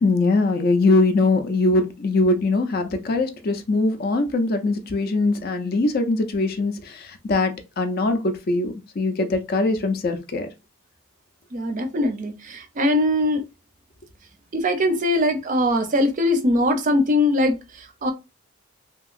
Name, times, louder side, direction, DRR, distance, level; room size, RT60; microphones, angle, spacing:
voice 1, 0.0-10.5, left 2 dB, 45° left, 0.4 m, -22 dB
voice 2, 11.5-13.4 14.5-18.1, left 1 dB, 35° right, 0.5 m, -21 dB
2.8 x 2.7 x 2.4 m
head